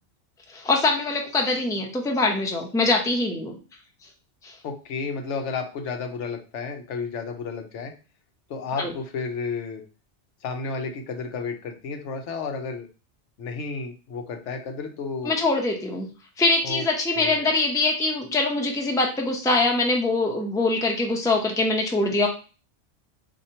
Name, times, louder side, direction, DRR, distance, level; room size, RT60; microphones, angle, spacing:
voice 1, 0.5-3.5 4.4-4.5 8.8-8.9 15.2-16.1 16.4-22.3, left 2 dB, 5° left, 1 dB, 0.5 m, -23 dB
voice 2, 4.6-7.9 8.5-9.8 10.4-12.9 13.4-15.4 16.6-16.8 17.1-17.5, left 4 dB, 90° left, 4 dB, 1.0 m, -32 dB
4.2 x 2.8 x 2.8 m, 0.34 s
omnidirectional pair, 1.2 m